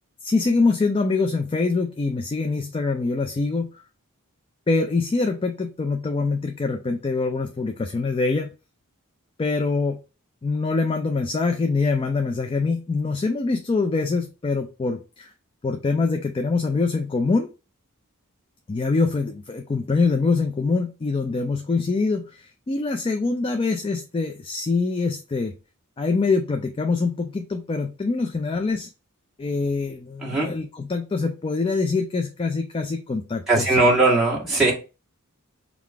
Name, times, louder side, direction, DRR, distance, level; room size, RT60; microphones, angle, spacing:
voice 1, 0.2-3.7 4.7-8.5 9.4-10.0 10.4-15.3 15.6-17.5 18.7-25.5 26.0-28.9 29.4-33.7, left 3 dB, 25° left, 6 dB, 0.4 m, -24 dB
voice 2, 30.2-30.5 33.5-34.7, right 2 dB, ahead, -6 dB, 1.8 m, -19 dB
3.7 x 2.4 x 4.6 m, 0.31 s
head